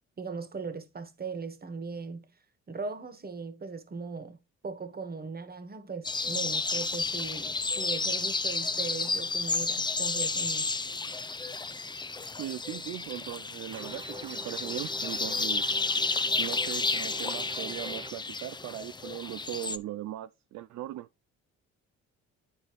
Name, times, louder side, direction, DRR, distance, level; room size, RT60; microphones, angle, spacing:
voice 1, 0.2-2.3 2.7-4.4 4.6-10.7, right 4 dB, 30° right, 1.4 m, -39 dB
sound 1, 6.0-19.8, left 3 dB, 15° left, 0.5 m, -31 dB
voice 2, 12.4-15.7 16.4-21.1, right 14 dB, 65° right, 0.4 m, -39 dB
sound 2, 13.7-18.1, right 3 dB, 15° right, 1.0 m, -45 dB
10.0 x 4.1 x 3.1 m
cardioid pair, 90°, 30 cm